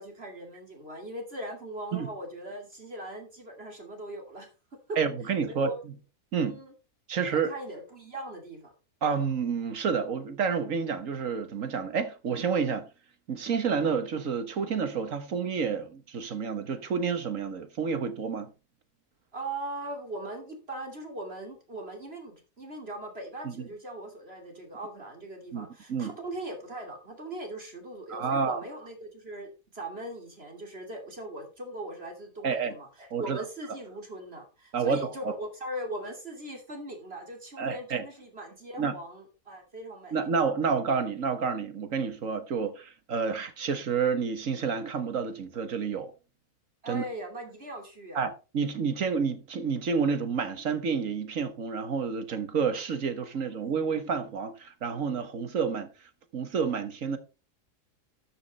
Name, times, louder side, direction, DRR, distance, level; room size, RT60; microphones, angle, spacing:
voice 1, 0.0-4.5 4.9-5.0 5.5-5.7 6.4-6.7 7.3-8.7 19.3-40.1 46.8-48.2 53.3-53.6, right 1 dB, 40° right, 2.9 m, -40 dB
voice 2, 5.0-5.9 6.3-6.6 7.1-7.5 9.0-12.9 13.3-18.5 23.4-23.5 25.5-26.1 28.1-28.6 32.4-32.7 33.1-33.4 34.7-35.3 37.6-38.0 38.8-38.9 40.1-46.1 46.9-47.0 48.1-55.9 56.3-57.2, right 5 dB, 55° right, 1.7 m, -29 dB
13.0 x 6.6 x 4.2 m
omnidirectional pair, 1.7 m